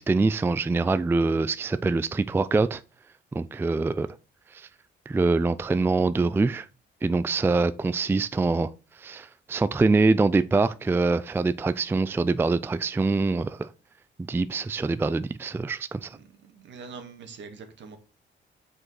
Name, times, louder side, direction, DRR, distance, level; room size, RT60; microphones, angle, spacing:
voice 1, 0.0-2.8 3.3-4.1 4.5-4.7 5.1-6.7 7.0-8.7 8.9-13.7 14.3-16.2, right 3 dB, 10° right, 0.3 m, -24 dB
voice 2, 16.1-18.0, right 5 dB, 65° right, 1.7 m, -44 dB
6.2 x 5.1 x 4.7 m
cardioid pair, 90°, 20 cm